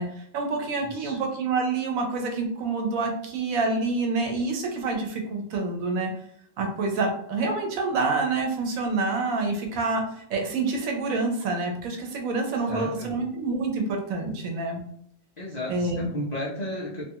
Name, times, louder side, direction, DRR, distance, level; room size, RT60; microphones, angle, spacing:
voice 1, 0.0-6.1 6.6-10.0 10.3-14.8 15.7-16.1, right 3 dB, 75° right, 2 dB, 1.0 m, -27 dB
voice 2, 12.4-13.1 15.4-17.0, left 1 dB, 85° left, -5 dB, 0.3 m, -33 dB
2.5 x 2.3 x 2.8 m, 0.71 s
omnidirectional pair, 1.5 m